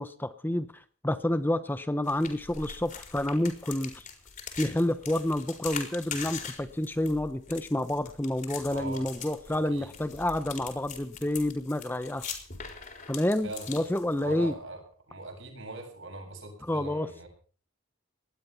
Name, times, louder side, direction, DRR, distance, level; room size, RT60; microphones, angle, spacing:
voice 1, 0.0-4.1 4.6-12.3 13.1-14.5 16.6-17.1, left 1 dB, 10° left, 11 dB, 0.8 m, -29 dB
sound 1, 2.0-14.5, left 6 dB, 40° left, 4.3 m, -42 dB
voice 2, 8.7-9.1 9.7-9.9 13.4-13.7 14.2-14.8 15.1-17.3, right 2 dB, 65° right, 3 dB, 7.5 m, -41 dB
19.0 x 13.0 x 5.7 m, 0.42 s
head